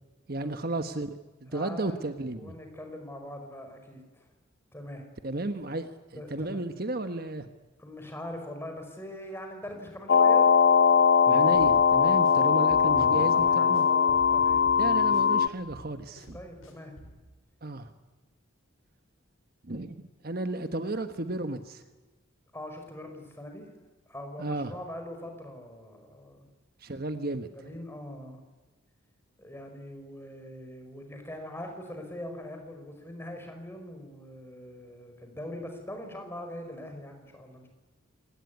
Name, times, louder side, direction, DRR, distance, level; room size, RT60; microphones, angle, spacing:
voice 1, 0.3-1.1 1.4-2.5 5.2-7.5 11.3-13.9 14.8-16.4 17.6-17.9 19.6-21.8 24.4-24.7 26.8-27.5, right 2 dB, 45° right, 8 dB, 1.3 m, -33 dB
voice 2, 1.5-2.0 2.4-4.3 4.7-5.0 6.2-6.6 7.8-10.5 12.8-14.6 16.3-16.9 22.5-23.7 24.1-26.5 27.5-28.4 29.4-37.7, left 1 dB, 10° left, 4 dB, 5.2 m, -42 dB
sound 1, 10.1-15.5, left 6 dB, 65° left, 0.8 m, -21 dB
sound 2, 11.5-17.2, equal, 85° left, 6.6 m, -48 dB
27.0 x 19.0 x 9.6 m, 1.2 s
head